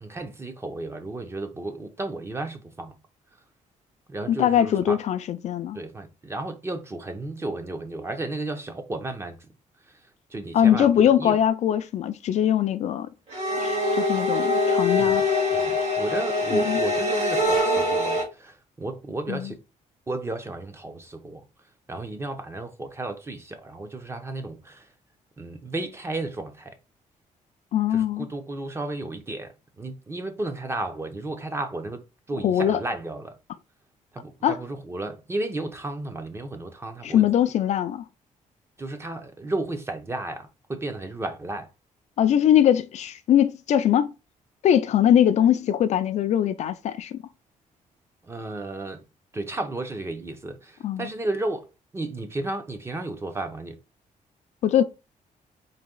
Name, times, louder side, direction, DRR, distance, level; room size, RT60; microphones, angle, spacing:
voice 1, 0.0-2.9 4.1-5.0 5.7-9.4 10.3-11.4 15.0-15.3 15.5-19.6 20.1-21.4 21.9-24.8 25.4-26.8 27.9-32.0 32.3-33.3 34.1-37.3 38.8-41.7 48.3-49.0 49.3-51.7 51.9-53.8, right 2 dB, 20° right, 0.7 m, -33 dB
voice 2, 4.3-5.8 10.5-13.1 13.6-15.2 16.5-16.8 19.3-19.5 27.7-28.3 32.4-32.8 34.4-34.6 37.0-38.0 42.2-44.1 44.6-47.2 50.8-51.1 54.6-54.8, left 10 dB, 55° left, 0.4 m, -21 dB
sound 1, 13.3-18.2, left 2 dB, 50° right, 2.4 m, -23 dB
4.1 x 2.8 x 3.7 m
cardioid pair, 145°, 14 cm